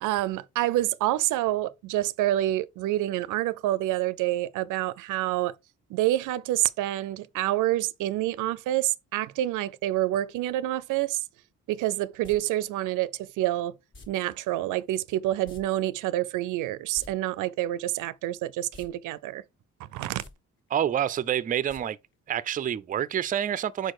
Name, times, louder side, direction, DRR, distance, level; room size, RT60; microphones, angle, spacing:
voice 1, 0.0-5.5 5.9-11.2 11.7-13.8 14.1-19.4 19.8-20.2, right 15 dB, 85° right, 0.5 m, -27 dB
sound 1, 12.2-12.4 13.9-14.1 15.4-15.6 15.9-16.0 16.8-17.1 18.7-18.9 19.2-19.3 20.1-20.3 21.7-21.8 22.1-22.2, left 2 dB, 40° left, 1.6 m, -46 dB
voice 2, 20.7-22.0 22.3-23.9, right 10 dB, 30° right, 0.4 m, -27 dB
4.6 x 4.4 x 4.7 m
cardioid pair, 90°, 30 cm